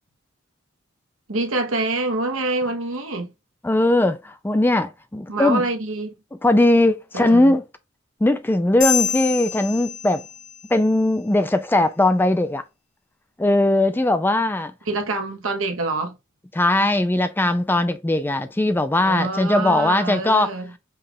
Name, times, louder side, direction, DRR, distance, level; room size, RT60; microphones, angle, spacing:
voice 1, 1.3-3.3 5.3-6.1 7.1-7.6 14.9-16.2 19.0-20.7, right 2 dB, 80° right, 1.1 m, -26 dB
voice 2, 3.6-5.7 6.4-7.6 8.2-10.2 10.7-12.6 13.4-14.7 16.5-20.5, left 1 dB, 10° left, 0.4 m, -19 dB
sound 1, 8.8-10.7, left 9 dB, 40° left, 0.9 m, -27 dB
5.4 x 2.4 x 3.5 m
head